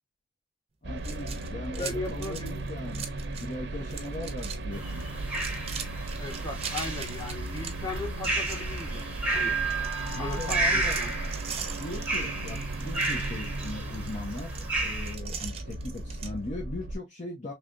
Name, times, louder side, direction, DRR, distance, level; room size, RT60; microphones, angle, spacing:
voice 1, 0.8-5.0 10.1-10.9 11.8-17.5, left 2 dB, 40° left, 0.9 m, -39 dB
sound 1, 0.8-16.9, right 2 dB, 70° right, 0.7 m, -36 dB
sound 2, 1.0-3.5 3.8-4.6 4.9-9.3 9.7-16.3, right 7 dB, 35° right, 0.7 m, -41 dB
voice 2, 1.8-2.5 6.2-9.1 9.3-9.6 10.2-11.1, left 2 dB, 20° left, 1.3 m, -37 dB
sound 3, 4.7-15.1, right 2 dB, 5° right, 0.9 m, -33 dB
3.4 x 3.3 x 2.5 m
head